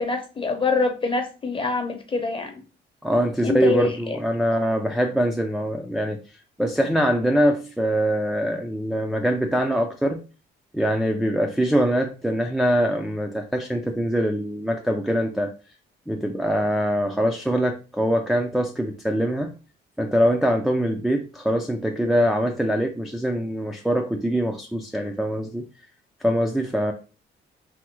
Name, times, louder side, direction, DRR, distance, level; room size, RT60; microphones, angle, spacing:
voice 1, 0.0-2.6 3.4-4.2, left 3 dB, 25° left, 5 dB, 0.7 m, -25 dB
voice 2, 3.0-6.2 6.6-10.2 10.7-15.5 16.1-19.5 20.0-25.6 26.2-26.9, equal, ahead, 2 dB, 0.3 m, -23 dB
3.4 x 2.0 x 3.0 m, 0.34 s
cardioid pair, 90°, 20 cm